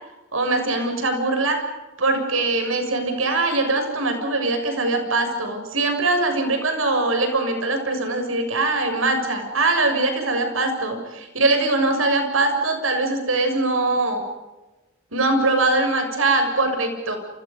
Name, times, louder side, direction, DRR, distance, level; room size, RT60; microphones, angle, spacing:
voice 1, 0.3-1.6 2.0-14.2 15.1-17.2, right 2 dB, 90° right, 6 dB, 6.9 m, -22 dB
29.5 x 29.0 x 5.5 m, 1.1 s
head